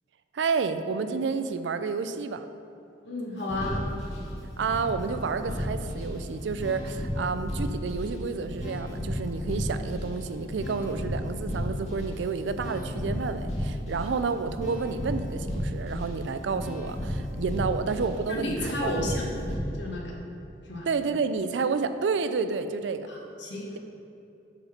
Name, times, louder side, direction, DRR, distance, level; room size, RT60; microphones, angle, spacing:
voice 1, 0.3-2.5 4.6-19.2 20.9-23.1, right 4 dB, 85° right, 10 dB, 0.4 m, -30 dB
voice 2, 3.0-3.8 18.3-19.3 19.8-20.2 20.6-20.9 23.1-23.8, left 1 dB, 80° left, -2 dB, 1.3 m, -32 dB
sound 1, 3.4-19.6, equal, 40° left, 1.8 m, -34 dB
8.2 x 3.9 x 5.8 m, 2.8 s
head